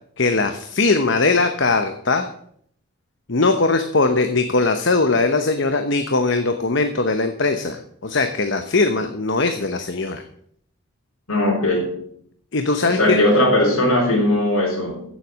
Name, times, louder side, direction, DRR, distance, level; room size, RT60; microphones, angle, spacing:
voice 1, 0.2-2.3 3.3-10.2 12.5-13.2, left 3 dB, 55° left, 7 dB, 0.9 m, -20 dB
voice 2, 11.3-11.9 12.8-15.0, left 1 dB, 90° left, -4 dB, 5.1 m, -18 dB
15.5 x 7.6 x 6.3 m, 0.66 s
head